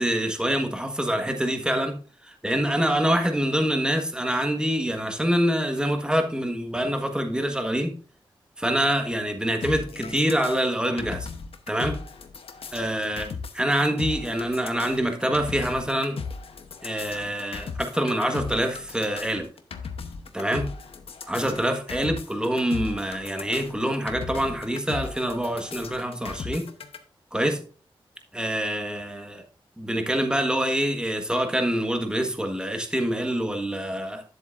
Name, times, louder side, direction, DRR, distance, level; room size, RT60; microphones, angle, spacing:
voice 1, 0.0-8.0 8.6-11.3 11.7-12.0 12.7-16.2 16.8-19.5 20.3-20.8 21.3-26.7 27.3-27.6 28.3-29.4 29.8-34.2, equal, 10° right, 1.4 m, -26 dB
sound 1, 9.6-27.0, left 5 dB, 85° left, 0.9 m, -37 dB
10.0 x 7.8 x 2.5 m
wide cardioid pair, 95°, 10 cm